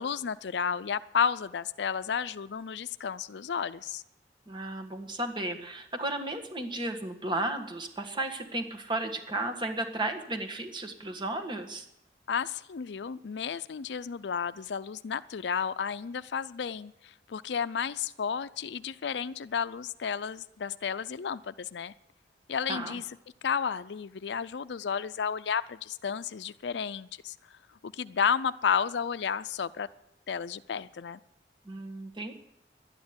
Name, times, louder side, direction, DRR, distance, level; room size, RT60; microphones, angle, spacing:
voice 1, 0.0-4.0 12.3-21.9 22.5-23.0 23.4-27.4 27.8-29.9 30.3-31.2, left 7 dB, 70° left, 15 dB, 0.5 m, -32 dB
voice 2, 4.5-11.8 22.7-23.0 31.6-32.3, right 2 dB, 25° right, 4 dB, 1.6 m, -34 dB
12.0 x 9.5 x 9.6 m, 0.82 s
head